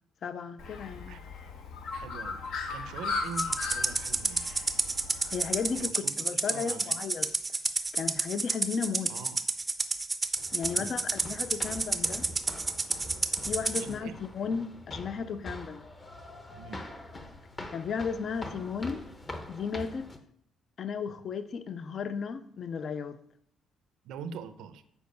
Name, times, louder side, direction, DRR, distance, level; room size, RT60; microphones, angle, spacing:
voice 1, 0.2-1.2 5.3-7.3 7.9-9.2 10.5-12.3 13.5-15.8 17.7-19.0 19.5-20.1 20.8-23.2, left 6 dB, 45° left, 0.5 m, -34 dB
Bird, 0.6-5.8, left 4 dB, 70° left, 1.0 m, -37 dB
voice 2, 1.9-2.4 2.7-4.4 5.8-7.0 9.1-9.4 10.7-11.0 13.8-14.2 16.5-16.9 24.0-24.8, right 6 dB, 85° right, 0.6 m, -43 dB
Rattle (instrument), 3.4-13.8, right 3 dB, 15° right, 0.5 m, -30 dB
sound 1, 10.4-20.2, left 1 dB, 20° left, 0.8 m, -44 dB
7.2 x 4.6 x 5.2 m
cardioid pair, 135°, 0 cm